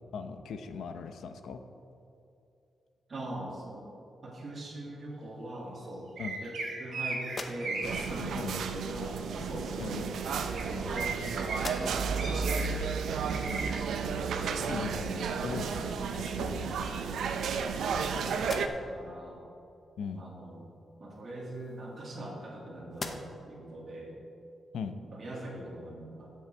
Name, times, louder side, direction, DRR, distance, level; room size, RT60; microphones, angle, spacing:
voice 1, 0.1-1.6 6.2-6.4 8.3-8.6 9.8-10.0 14.7-17.0 20.0-20.2 24.7-25.0, left 5 dB, 85° left, 8 dB, 0.7 m, -39 dB
voice 2, 3.1-3.9 4.2-6.1 6.4-10.0 10.6-12.6 13.2-15.9 16.7-17.3 18.1-19.4 20.1-20.6 21.0-24.2 25.1-26.3, right 1 dB, 30° right, -4 dB, 2.1 m, -42 dB
sound 1, 6.2-8.0 10.5-10.6 10.9-11.6 12.2-12.9 13.3-13.7, right 4 dB, 60° right, 2.1 m, -36 dB
sound 2, 7.2-8.1 9.2-9.4 10.3-11.2 11.5-12.2 12.7-12.8 15.5-15.6 16.0-16.7 17.3-18.0 18.4-19.1 21.1-22.5 22.9-23.6, left 3 dB, 30° left, 0.7 m, -44 dB
sound 3, 7.8-18.7, right 6 dB, 85° right, 0.6 m, -33 dB
15.5 x 6.4 x 4.5 m, 2.7 s
wide cardioid pair, 175°, 0 cm